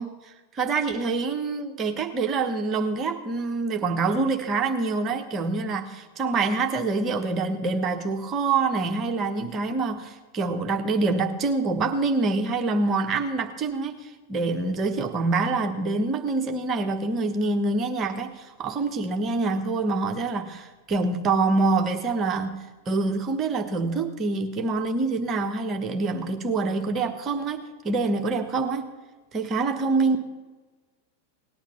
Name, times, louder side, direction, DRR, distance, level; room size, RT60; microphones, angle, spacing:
voice 1, 0.0-28.9 29.3-30.2, right 3 dB, 25° right, 5 dB, 1.3 m, -26 dB
18.5 x 10.0 x 5.6 m, 1.3 s
figure-of-eight pair, 90°, 0 cm